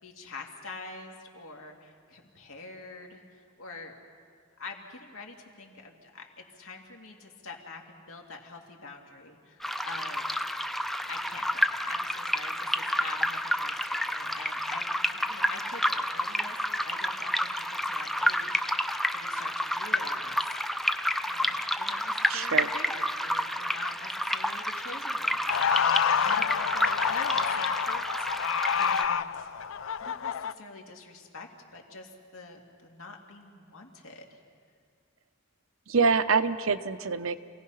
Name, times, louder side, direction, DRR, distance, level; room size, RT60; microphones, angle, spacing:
voice 1, 0.0-4.0 4.6-6.3 6.6-10.5 11.1-20.4 21.3-29.5 30.0-34.4, left 3 dB, 85° left, 1 dB, 2.3 m, -45 dB
sound 1, 9.6-29.0, equal, ahead, 0.4 m, -30 dB
voice 2, 22.3-22.7 35.9-37.4, right 5 dB, 75° right, 12 dB, 0.7 m, -25 dB
sound 2, 25.5-30.5, left 7 dB, 65° left, 0.5 m, -28 dB
27.5 x 17.0 x 5.6 m, 2.1 s
head